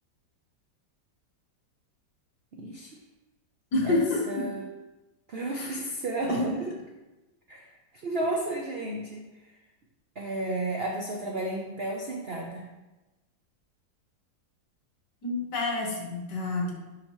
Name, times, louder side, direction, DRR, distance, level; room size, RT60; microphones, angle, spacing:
voice 1, 2.5-3.0 3.8-4.0 4.3-4.6 5.3-6.7 7.5-7.7 8.0-9.2 10.2-12.7, right 2 dB, 65° right, 0 dB, 0.5 m, -32 dB
voice 2, 3.7-4.4 5.6-5.7 6.3-6.4 15.2-16.7, left 2 dB, 70° left, -1 dB, 2.0 m, -28 dB
10.0 x 3.9 x 3.1 m, 1.1 s
omnidirectional pair, 1.9 m